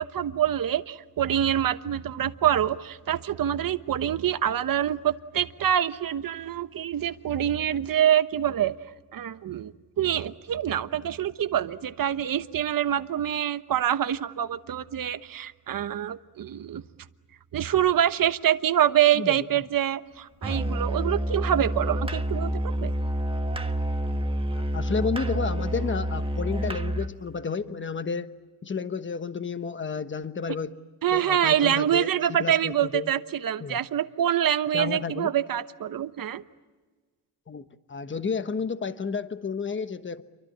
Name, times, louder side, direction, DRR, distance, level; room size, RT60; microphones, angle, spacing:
voice 1, 0.0-8.8 9.1-9.7 10.0-16.8 17.5-22.9 31.0-36.4, right 10 dB, 55° right, 1.1 m, -25 dB
Musical instrument, 20.4-27.2, equal, 15° right, 1.3 m, -28 dB
voice 2, 24.5-28.3 28.6-30.7 31.1-33.1 33.6-33.8 34.7-35.3 37.5-40.2, left 5 dB, 30° left, 1.2 m, -31 dB
28.5 x 24.0 x 8.7 m
cardioid pair, 115°, 41 cm